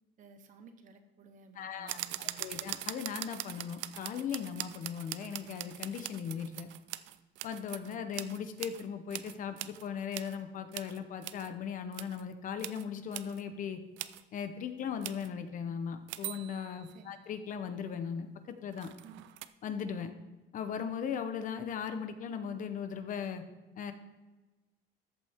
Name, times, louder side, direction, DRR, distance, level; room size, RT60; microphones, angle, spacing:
voice 1, 0.2-2.7 16.9-17.2 19.0-19.2, right 6 dB, 45° right, 8 dB, 1.0 m, -55 dB
voice 2, 1.6-6.7 7.4-13.8 14.3-18.9 19.6-20.1 20.5-23.4 23.8-23.9, left 7 dB, 45° left, 9 dB, 0.9 m, -38 dB
sound 1, 1.9-8.8 9.1-10.4 10.7-11.5 11.9-12.2 12.6-12.8 13.1-13.4 14.0-14.2 15.0-15.3 16.1-17.0 18.7-19.5, right 15 dB, 85° right, 0.5 m, -42 dB
14.0 x 8.4 x 3.6 m, 1.2 s
cardioid pair, 170°, 19 cm